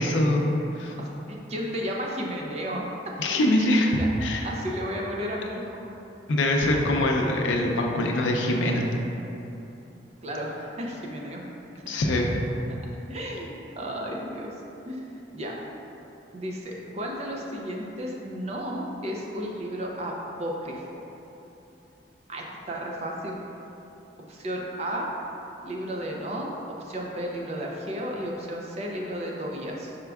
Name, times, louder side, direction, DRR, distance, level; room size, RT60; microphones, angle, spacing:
voice 1, 0.0-0.9 3.2-4.5 6.3-8.8 11.9-12.3, left 1 dB, 85° left, 0 dB, 0.5 m, -23 dB
voice 2, 0.8-3.1 3.6-4.1 4.4-5.8 8.0-8.1 10.2-11.4 11.9-12.0 13.1-14.5 14.8-15.5 16.3-20.1 20.4-21.0 22.3-23.4 24.3-25.1 25.6-30.0, equal, 35° right, -1 dB, 0.5 m, -33 dB
5.0 x 4.5 x 2.3 m, 2.9 s
head